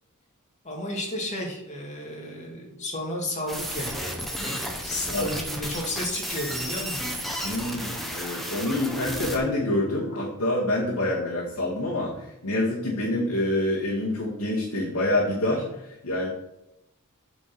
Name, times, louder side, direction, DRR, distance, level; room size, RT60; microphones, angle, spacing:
voice 1, 0.6-4.1 4.4-4.5 4.8-7.1, left 1 dB, 30° left, -1 dB, 2.5 m, -33 dB
sound 1, 3.5-9.4, equal, ahead, 1.2 m, -33 dB
sound 2, 5.8-10.2, left 1 dB, 65° left, 1.5 m, -42 dB
voice 2, 7.4-16.3, left 1 dB, 80° left, -6 dB, 2.1 m, -27 dB
7.9 x 5.3 x 6.1 m, 0.88 s
head